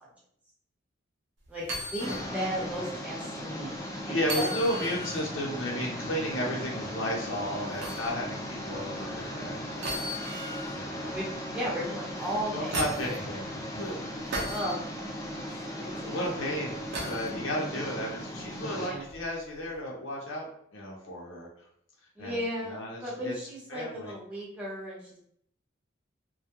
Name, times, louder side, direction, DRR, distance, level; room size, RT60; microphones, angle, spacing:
voice 1, 1.5-4.5 11.1-12.9 14.4-14.8 15.3-15.4 15.8-16.1 18.8-19.1 22.2-25.2, equal, 5° right, -6 dB, 0.8 m, -35 dB
sound 1, 1.6-2.3 2.7-2.8 4.2-5.2 7.8-8.1 9.8-10.8 12.2-13.2 14.3-14.7 16.9-17.3 19.1-19.2, right 1 dB, 60° right, 0.6 m, -35 dB
sound 2, 2.0-18.9, equal, 15° left, 0.4 m, -37 dB
voice 2, 4.0-10.3 10.7-11.2 12.5-14.2 16.1-21.5 22.2-22.4 22.6-23.3 23.7-24.1, equal, 85° left, -2 dB, 0.6 m, -34 dB
2.2 x 2.0 x 2.9 m, 0.67 s
head